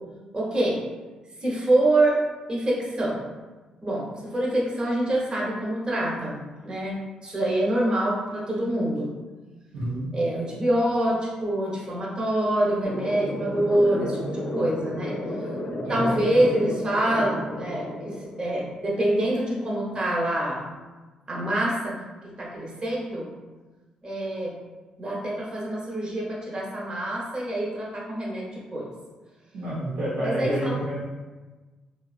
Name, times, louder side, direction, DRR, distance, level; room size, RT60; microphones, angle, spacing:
voice 1, 0.3-0.8 1.4-2.2 2.5-3.2 3.8-9.1 10.1-15.2 15.9-20.6 21.3-21.9 22.2-23.3 24.0-24.5 25.0-28.9 30.2-30.8, right 1 dB, 35° right, -4 dB, 0.9 m, -26 dB
voice 2, 9.7-10.1 15.9-16.3 29.5-31.0, right 1 dB, 85° right, -8 dB, 0.8 m, -29 dB
sound 1, 12.8-18.8, left 1 dB, 55° left, 0.6 m, -32 dB
2.9 x 2.3 x 2.4 m, 1.3 s
supercardioid pair, 60°, 3 cm